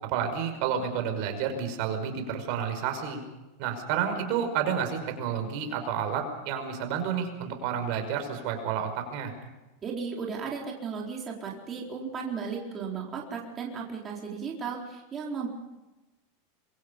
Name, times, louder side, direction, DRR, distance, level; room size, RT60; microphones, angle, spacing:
voice 1, 0.0-3.2 3.6-9.3, right 7 dB, 55° right, 6 dB, 5.4 m, -30 dB
voice 2, 9.8-15.5, right 5 dB, 25° right, -1 dB, 4.2 m, -35 dB
26.0 x 23.5 x 5.4 m, 1.0 s
supercardioid pair, 130°, 0 cm